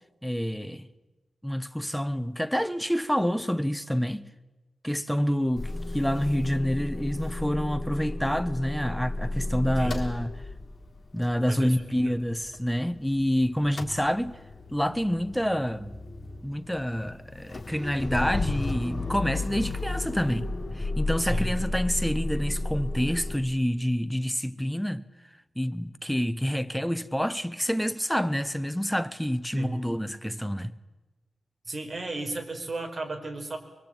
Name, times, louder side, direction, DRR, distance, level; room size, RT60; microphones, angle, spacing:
voice 1, 0.2-0.9 1.4-4.3 4.8-10.3 11.1-14.4 14.7-15.9 16.4-20.5 20.7-25.1 25.6-30.7, equal, ahead, 1.0 m, -28 dB
Motor vehicle (road) / Engine starting / Idling, 5.6-13.3 13.5-23.4, left 2 dB, 35° left, 3.5 m, -33 dB
voice 2, 11.5-12.2 21.2-21.6 29.5-29.8 31.6-33.6, right 2 dB, 30° right, 4.8 m, -34 dB
25.0 x 23.0 x 9.0 m
wide cardioid pair, 125°, 0 cm